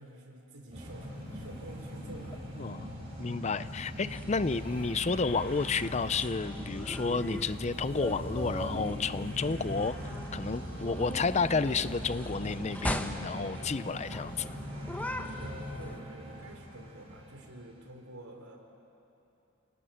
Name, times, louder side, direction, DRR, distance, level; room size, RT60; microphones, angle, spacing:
voice 1, 0.0-2.8 15.4-18.6, right 1 dB, 85° right, 3 dB, 3.8 m, -49 dB
sound 1, 0.7-17.8, equal, 25° right, 7.7 m, -41 dB
voice 2, 3.2-10.0 10.3-14.5, left 4 dB, 30° left, 14 dB, 0.5 m, -31 dB
sound 2, 4.1-16.0, left 1 dB, 5° left, 1.0 m, -40 dB
29.0 x 18.5 x 9.3 m, 2.9 s
head